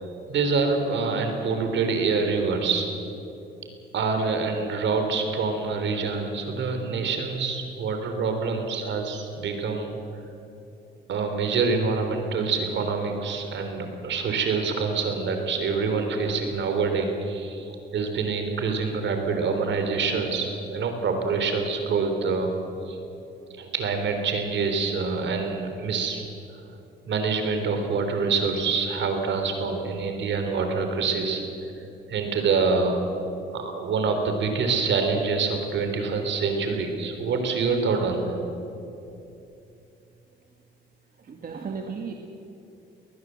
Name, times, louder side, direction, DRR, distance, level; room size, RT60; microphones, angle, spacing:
voice 1, 0.3-2.9 3.9-10.0 11.1-23.0 23.6-26.3 27.1-31.4 32.1-33.0 33.5-38.3, right 4 dB, 70° right, 5 dB, 3.8 m, -26 dB
voice 2, 41.3-42.1, right 5 dB, 45° right, 3 dB, 1.8 m, -35 dB
21.0 x 19.5 x 7.8 m, 2.8 s
cardioid pair, 90°, 20 cm